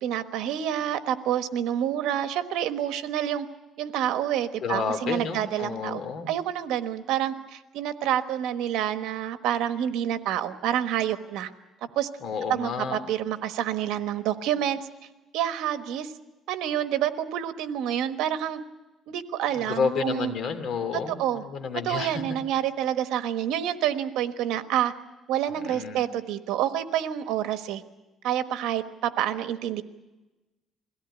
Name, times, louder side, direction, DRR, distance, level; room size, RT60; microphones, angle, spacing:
voice 1, 0.0-3.5 3.8-6.0 6.3-11.5 11.9-12.1 12.5-14.8 15.3-16.1 16.5-18.6 19.1-20.3 21.1-21.4 21.8-24.9 25.3-27.8 28.2-29.8, right 10 dB, 85° right, 9 dB, 1.2 m, -28 dB
voice 2, 4.6-6.3 12.2-13.0 19.6-22.2 25.5-26.1, left 5 dB, 55° left, 7 dB, 2.7 m, -30 dB
22.5 x 16.5 x 9.9 m, 1.1 s
cardioid pair, 135°, 0 cm